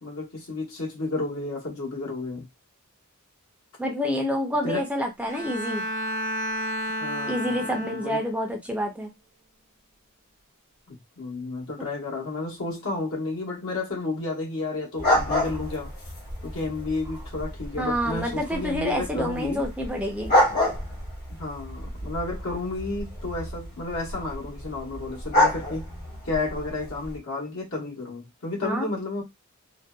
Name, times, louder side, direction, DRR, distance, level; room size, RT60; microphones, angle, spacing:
voice 1, 0.0-2.5 4.6-4.8 7.0-8.2 10.9-15.9 16.4-19.7 21.3-25.9 26.2-29.2, left 3 dB, 75° left, 1.0 m, -32 dB
voice 2, 3.8-5.8 7.3-9.1 17.8-20.3 28.6-28.9, equal, 5° right, 0.4 m, -28 dB
Bowed string instrument, 5.3-8.5, equal, 55° right, 0.6 m, -31 dB
sound 1, 15.0-27.2, left 1 dB, 50° left, 0.9 m, -29 dB
2.6 x 2.1 x 2.2 m
head